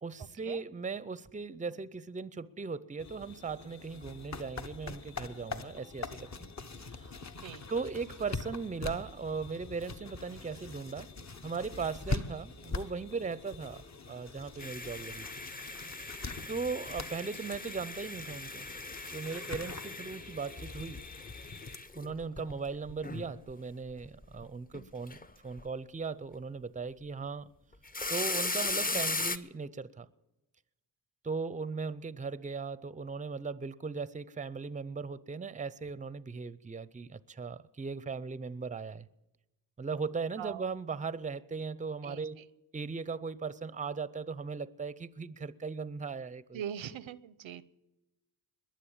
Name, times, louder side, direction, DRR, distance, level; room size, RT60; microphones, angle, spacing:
voice 1, 0.0-6.5 6.8-7.2 7.7-11.1 11.4-15.3 16.5-18.7 19.1-21.1 21.9-27.5 28.1-30.1 31.2-39.1 39.8-42.4 42.7-46.6, right 5 dB, 15° right, 0.6 m, -38 dB
sound 1, 3.0-21.8, left 3 dB, 35° left, 1.1 m, -43 dB
sound 2, 14.6-23.5 23.9-24.4 24.7-25.3 25.6-25.7 27.7-29.4, left 3 dB, 20° left, 0.8 m, -38 dB
voice 2, 46.5-47.6, right 9 dB, 90° right, 0.8 m, -41 dB
21.5 x 7.7 x 8.8 m
cardioid pair, 65°, 45 cm